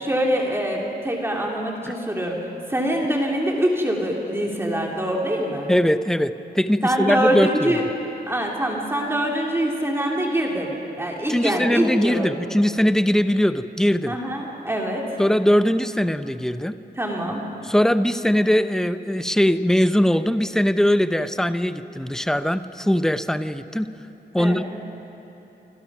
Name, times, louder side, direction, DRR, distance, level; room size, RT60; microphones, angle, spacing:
voice 1, 0.0-2.4 2.7-5.7 6.8-7.9 8.3-10.7 11.0-12.3 14.1-15.0 17.0-17.4 24.4-24.6, right 1 dB, 15° right, -1 dB, 2.5 m, -24 dB
voice 2, 5.7-7.8 11.3-14.2 15.2-16.8 17.6-23.9 24.3-24.6, equal, 5° left, 11 dB, 0.6 m, -21 dB
27.0 x 26.0 x 6.0 m, 3.0 s
wide cardioid pair, 170°, 17 cm